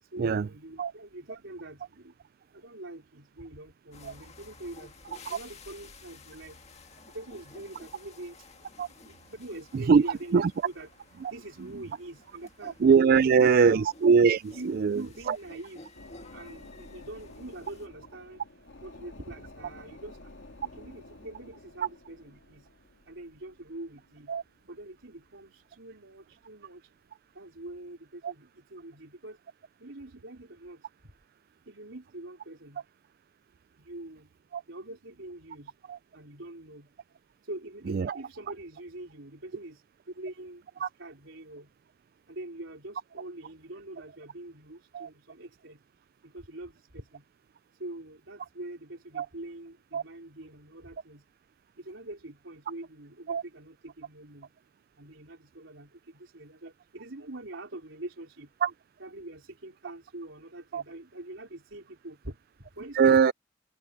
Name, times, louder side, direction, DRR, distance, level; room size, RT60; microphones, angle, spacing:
voice 1, 0.0-2.1 2.5-5.0 5.3-6.6 7.1-8.4 9.0-10.9 11.3-12.8 13.1-13.9 14.5-15.9 16.3-18.4 18.8-20.3 20.6-22.7 23.1-24.3 24.7-26.8 27.3-29.4 29.8-30.9 31.7-32.8 33.8-34.3 34.7-35.7 36.1-36.9 37.4-41.7 42.3-45.8 46.2-47.2 47.8-51.2 51.8-54.5 55.0-58.5 59.0-63.2, right 1 dB, 80° right, 3.9 m, -44 dB
sound 1, 3.9-17.9, left 3 dB, 35° left, 1.8 m, -53 dB
voice 2, 12.6-15.0 15.3-15.4 24.3-24.4 28.2-28.3 34.5-34.6 35.9-36.0 37.9-38.2 40.8-40.9 44.9-45.1 49.2-49.3 49.9-50.0 53.3-53.4 58.6-58.7 60.7-60.8 62.9-63.3, right 6 dB, 50° right, 0.3 m, -22 dB
sound 2, 15.9-25.9 26.3-26.4, left 2 dB, 70° left, 2.4 m, -51 dB
head